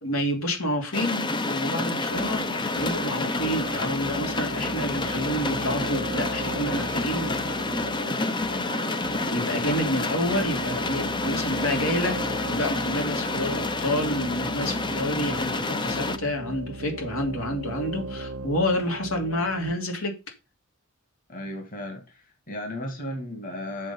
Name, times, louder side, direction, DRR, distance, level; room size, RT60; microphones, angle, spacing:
voice 1, 0.0-2.4 2.7-7.3 9.3-12.2 12.4-20.1, left 1 dB, 80° left, 2.8 m, -29 dB
sound 1, 0.9-16.2, left 2 dB, 20° left, 0.7 m, -29 dB
sound 2, 2.1-19.7, right 2 dB, 70° right, 0.8 m, -38 dB
voice 2, 21.3-23.9, left 1 dB, 40° left, 2.4 m, -35 dB
7.5 x 7.4 x 5.5 m
head